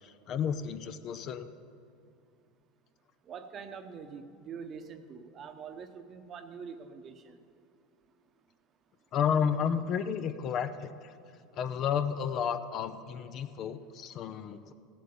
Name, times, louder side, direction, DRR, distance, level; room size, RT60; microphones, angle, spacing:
voice 1, 0.0-1.5 9.1-11.1 11.5-14.7, left 7 dB, 45° left, 11 dB, 0.7 m, -32 dB
voice 2, 3.2-7.4, right 6 dB, 35° right, 9 dB, 1.0 m, -44 dB
16.0 x 7.7 x 7.0 m, 2.3 s
supercardioid pair, 110°, 0 cm